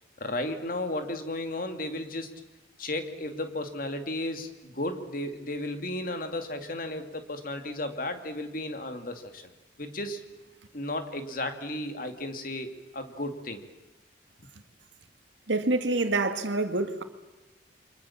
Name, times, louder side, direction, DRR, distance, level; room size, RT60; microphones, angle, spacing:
voice 1, 0.2-2.3 2.8-9.4 9.8-10.2 10.7-13.6, left 1 dB, 50° left, 2.4 m, -34 dB
voice 2, 15.5-17.0, right 2 dB, 80° right, 2.0 m, -26 dB
29.0 x 24.5 x 7.3 m
head